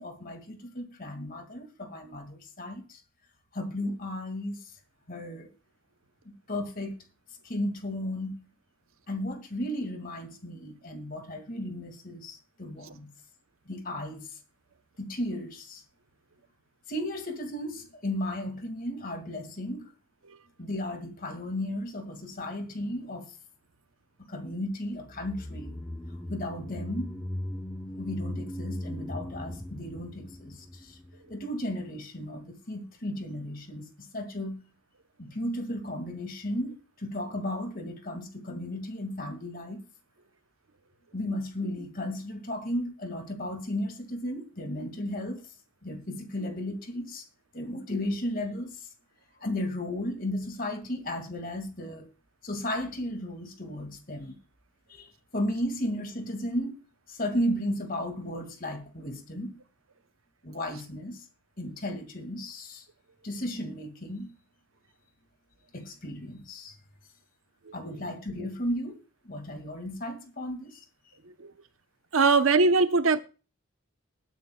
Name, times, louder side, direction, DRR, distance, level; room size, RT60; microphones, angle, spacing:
voice 1, 0.0-3.0 3.5-4.6 5.1-5.5 6.3-7.0 7.4-8.4 9.1-13.1 13.7-14.3 15.0-15.8 16.9-19.9 20.6-23.3 24.2-25.7 26.3-27.1 28.0-30.9 31.3-34.6 35.2-39.8 41.1-45.5 45.8-47.2 47.5-48.8 49.4-52.1 52.4-54.4 54.9-55.1 55.3-56.8 57.1-59.6 60.4-61.2 61.6-62.8 63.2-64.3 65.7-66.7 67.7-70.8, left 1 dB, 45° left, 2.2 m, -34 dB
sound 1, 25.0-31.4 31.7-31.8, left 1 dB, 10° left, 0.9 m, -38 dB
voice 2, 72.1-73.2, right 4 dB, 85° right, 0.8 m, -21 dB
20.5 x 9.3 x 2.3 m
head